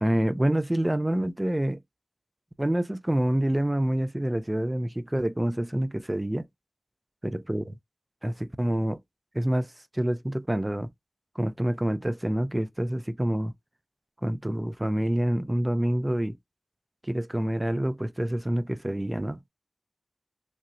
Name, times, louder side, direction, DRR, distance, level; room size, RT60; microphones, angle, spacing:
voice 1, 0.0-1.8 2.6-6.5 7.2-7.7 8.2-9.0 9.3-10.9 11.4-13.5 14.2-16.4 17.0-19.5, right 1 dB, 20° right, 0.4 m, -27 dB
3.2 x 2.8 x 2.5 m
wide cardioid pair, 50°, 0 cm